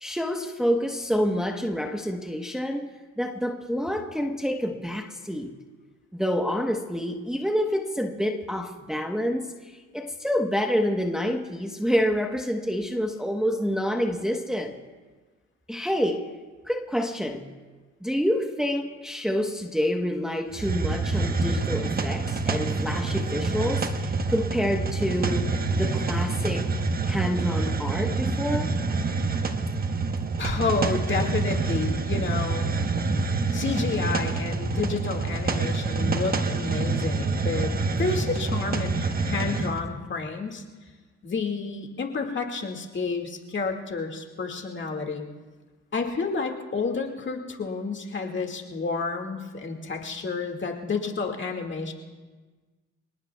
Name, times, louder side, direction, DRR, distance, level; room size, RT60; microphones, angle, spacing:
voice 1, 0.0-5.5 6.1-14.8 15.7-16.3 16.6-17.5 18.0-25.5 25.8-26.7 27.0-28.8, equal, ahead, 1.1 m, -28 dB
Hiss, 20.5-39.8, right 3 dB, 30° right, 1.1 m, -27 dB
voice 2, 30.4-32.7 33.5-37.7 38.0-40.6 41.2-45.2 45.9-51.9, left 4 dB, 40° left, 2.1 m, -30 dB
28.0 x 19.0 x 2.3 m
cardioid pair, 90°, 30 cm